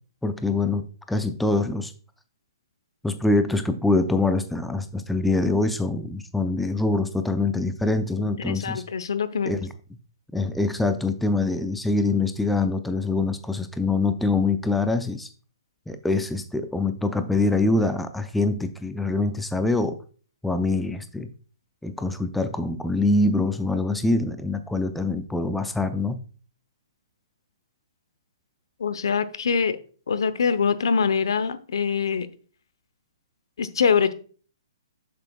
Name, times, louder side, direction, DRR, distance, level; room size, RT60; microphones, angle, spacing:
voice 1, 0.2-1.9 3.0-8.8 9.5-9.7 10.3-15.3 15.9-20.0 20.4-21.3 21.8-26.2, left 2 dB, 5° left, 9 dB, 0.4 m, -24 dB
voice 2, 8.2-9.6 28.8-29.8 30.1-32.3 33.6-34.1, left 6 dB, 70° left, 13 dB, 0.8 m, -24 dB
7.7 x 7.2 x 2.3 m, 0.41 s
hypercardioid pair, 140°, 2 cm